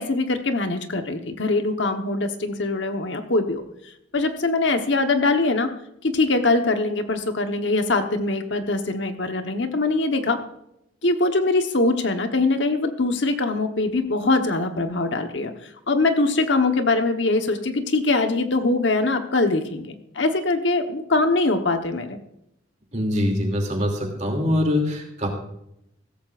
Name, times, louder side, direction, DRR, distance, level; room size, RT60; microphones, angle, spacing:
voice 1, 0.0-3.6 4.1-5.7 6.0-10.4 11.0-15.5 15.9-22.2, left 2 dB, 65° left, 6 dB, 1.2 m, -22 dB
voice 2, 22.9-25.3, left 1 dB, 40° right, 2 dB, 2.9 m, -23 dB
15.5 x 14.0 x 2.5 m, 0.79 s
head